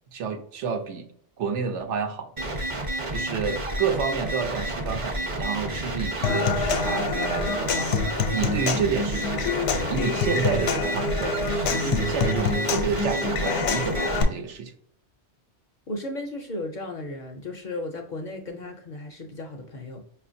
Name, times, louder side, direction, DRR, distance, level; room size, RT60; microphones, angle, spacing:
voice 1, 0.1-1.1 1.4-2.5 3.1-7.9 8.3-9.5 9.9-14.7, right 6 dB, 80° right, 7 dB, 0.9 m, -29 dB
sound 1, 2.4-14.2, right 1 dB, 35° right, 0.6 m, -30 dB
Human voice / Acoustic guitar / Percussion, 6.2-14.2, left 5 dB, 80° left, 0.9 m, -27 dB
voice 2, 15.9-20.0, left 2 dB, 55° left, 3 dB, 0.5 m, -35 dB
5.5 x 2.4 x 2.5 m, 0.66 s
omnidirectional pair, 1.2 m